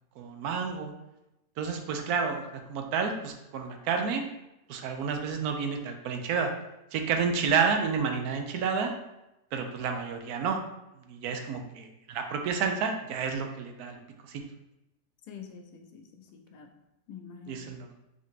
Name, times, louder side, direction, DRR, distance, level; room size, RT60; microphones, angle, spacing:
voice 1, 0.2-0.9 1.6-4.2 4.7-6.5 6.9-8.9 9.5-10.6 11.1-14.0 14.3-14.4 17.5-17.9, right 5 dB, 75° right, 4 dB, 1.1 m, -30 dB
voice 2, 15.3-16.7 17.1-17.7, left 7 dB, 85° left, 4 dB, 1.2 m, -46 dB
4.2 x 2.7 x 4.7 m, 0.92 s
omnidirectional pair, 1.7 m